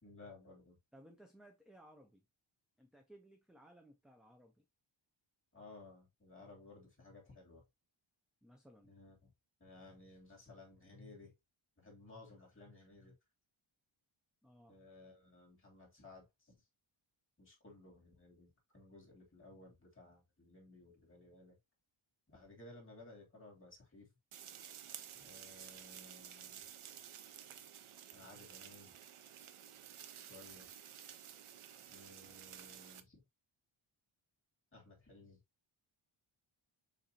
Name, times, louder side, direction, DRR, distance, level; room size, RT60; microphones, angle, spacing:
voice 1, 0.0-0.8 5.5-7.6 8.8-9.3 9.6-11.3 11.8-13.2 14.7-16.6 17.4-21.6 22.3-24.1 25.2-26.6 28.1-28.9 30.2-30.7 31.9-33.2 34.7-35.4, left 2 dB, 25° left, 2.6 m, -58 dB
voice 2, 0.9-2.3 2.8-4.7 8.4-8.9 14.4-14.8, right 1 dB, ahead, 0.5 m, -61 dB
sound 1, 24.3-33.0, right 9 dB, 80° right, 0.7 m, -53 dB
6.6 x 2.7 x 2.8 m
wide cardioid pair, 155°, 50 cm